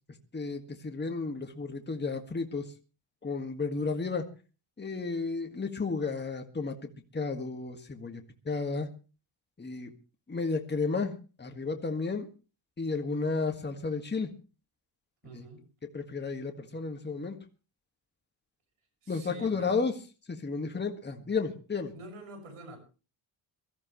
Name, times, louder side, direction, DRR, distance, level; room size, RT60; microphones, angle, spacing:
voice 1, 0.3-2.7 3.2-4.2 4.8-6.7 7.1-8.9 9.6-9.9 10.3-12.2 12.8-14.3 15.3-15.4 15.9-17.4 19.1-19.9 20.3-21.9, left 4 dB, 20° left, 4 dB, 1.7 m, -32 dB
voice 2, 15.2-15.7 19.0-19.9 21.9-22.8, right 2 dB, 90° right, 4 dB, 6.2 m, -47 dB
23.5 x 14.0 x 3.1 m, 0.34 s
wide cardioid pair, 135°, 50 cm